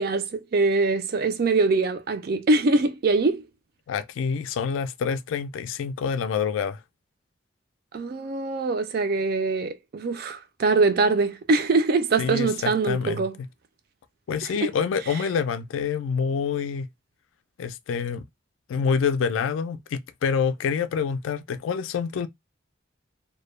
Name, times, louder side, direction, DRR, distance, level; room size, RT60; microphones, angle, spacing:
voice 1, 0.0-3.5 7.9-13.4 14.6-14.7, right 3 dB, 50° right, 0.4 m, -23 dB
voice 2, 3.9-6.8 12.2-13.5 14.3-16.9 17.6-18.2 18.7-22.3, left 6 dB, 85° left, 0.3 m, -27 dB
2.2 x 2.0 x 3.0 m
head